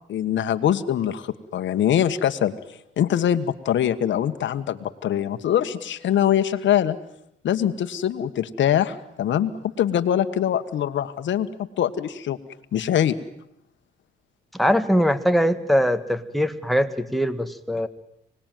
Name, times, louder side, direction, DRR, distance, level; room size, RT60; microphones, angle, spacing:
voice 1, 0.1-2.5 3.0-7.0 7.4-9.5 9.8-12.4 12.7-13.2, left 10 dB, 70° left, 9 dB, 1.6 m, -23 dB
voice 2, 14.5-17.9, equal, ahead, 7 dB, 1.8 m, -22 dB
25.5 x 19.5 x 9.3 m, 0.78 s
cardioid pair, 90°, 20 cm